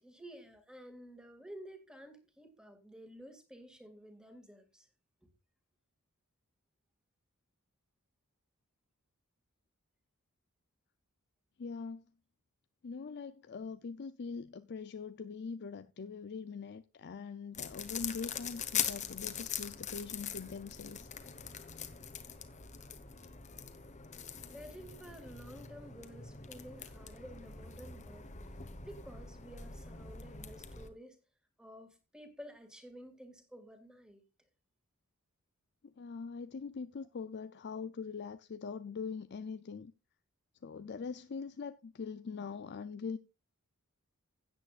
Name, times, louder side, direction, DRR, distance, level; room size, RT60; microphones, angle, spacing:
voice 1, 0.0-4.9 5.2-5.3 24.5-28.3 28.8-31.2 31.6-34.2, equal, 5° right, 2.3 m, -52 dB
voice 2, 11.6-12.0 12.8-21.1 35.8-39.9 40.6-43.2, left 5 dB, 50° left, 0.5 m, -42 dB
sound 1, 17.5-30.9, left 8 dB, 35° left, 1.3 m, -42 dB
16.5 x 8.5 x 2.5 m
head